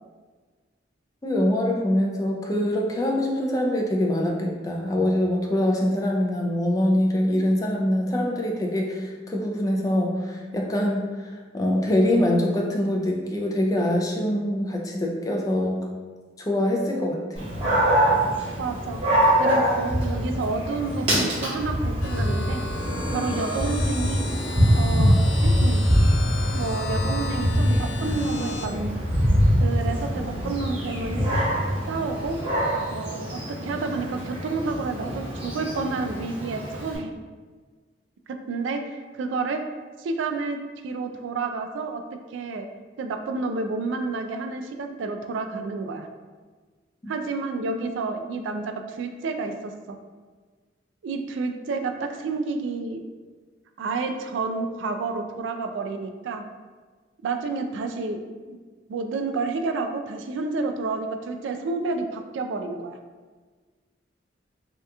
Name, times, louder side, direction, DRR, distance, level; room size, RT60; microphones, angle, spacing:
voice 1, 1.2-15.8 16.4-17.2 47.0-47.1, left 1 dB, 20° left, 0 dB, 0.3 m, -24 dB
Dog, 17.4-37.0, equal, 30° right, 0.9 m, -24 dB
voice 2, 18.6-19.0 19.4-22.6 23.1-24.3 24.7-25.1 25.4-25.9 26.5-29.0 29.6-31.3 31.9-32.4 32.9-37.2 38.5-39.6 40.0-40.6 40.8-42.0 42.3-42.7 43.0-46.1 47.1-50.0 51.0-53.0 53.8-56.4 57.2-58.6 58.9-63.0, right 3 dB, 75° right, 6 dB, 0.3 m, -30 dB
sound 1, 22.0-28.7, left 3 dB, 90° left, 0.4 m, -35 dB
2.8 x 2.3 x 3.4 m, 1.4 s
head